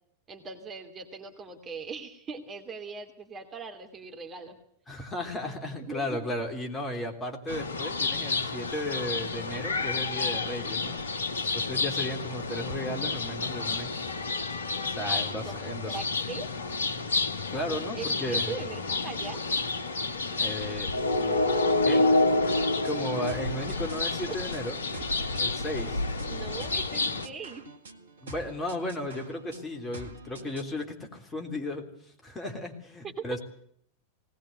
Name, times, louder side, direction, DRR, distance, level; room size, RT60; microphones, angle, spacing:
voice 1, 0.3-4.6 5.9-6.2 15.1-16.5 17.9-19.4 24.3-24.4 26.3-27.7 33.0-33.4, right 5 dB, 25° right, 6 dB, 2.7 m, -40 dB
voice 2, 4.9-11.0 11.5-14.0 14.8-16.0 17.5-18.5 20.3-20.9 21.2-21.5 21.8-22.2 22.8-24.8 25.4-26.0 28.2-33.4, left 1 dB, 15° left, 3 dB, 3.4 m, -35 dB
sound 1, 7.5-27.3, left 3 dB, 70° left, 1.4 m, -29 dB
sound 2, 22.4-30.8, right 3 dB, 70° right, 1.7 m, -47 dB
19.0 x 19.0 x 8.0 m, 0.65 s
figure-of-eight pair, 90°, 0 cm